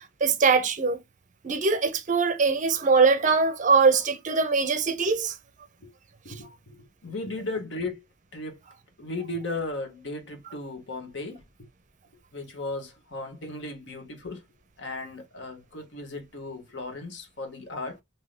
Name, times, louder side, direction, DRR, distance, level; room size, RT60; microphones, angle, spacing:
voice 1, 0.2-1.0 1.4-5.3, right 4 dB, 40° right, 0.5 m, -22 dB
voice 2, 6.2-8.0 8.3-8.6 9.0-11.4 12.3-14.4 14.8-18.0, left 2 dB, 65° left, 0.9 m, -36 dB
2.7 x 2.6 x 3.1 m
head